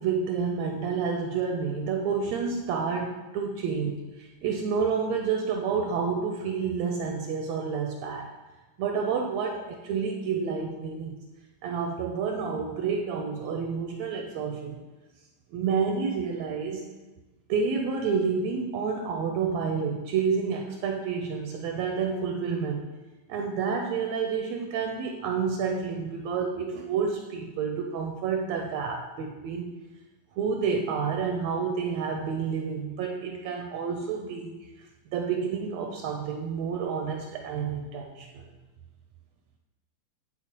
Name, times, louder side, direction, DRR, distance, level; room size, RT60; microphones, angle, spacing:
voice 1, 0.0-8.3 8.8-11.2 11.6-14.8 15.5-16.8 17.5-22.8 23.3-29.7 30.4-34.7 35.1-38.4, right 5 dB, 80° right, 2 dB, 1.6 m, -29 dB
9.7 x 4.2 x 2.9 m, 1.1 s
omnidirectional pair, 3.4 m